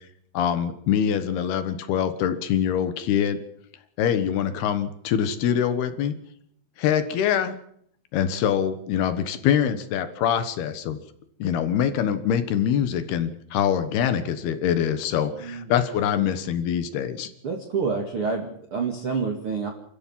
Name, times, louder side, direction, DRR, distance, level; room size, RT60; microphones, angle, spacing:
voice 1, 0.3-3.4 4.0-6.1 6.8-7.5 8.1-11.0 11.4-17.3, left 9 dB, 65° left, 10 dB, 3.0 m, -24 dB
voice 2, 15.3-15.7 17.4-19.7, right 5 dB, 40° right, 1 dB, 2.1 m, -28 dB
29.0 x 14.0 x 7.5 m, 0.71 s
omnidirectional pair, 5.5 m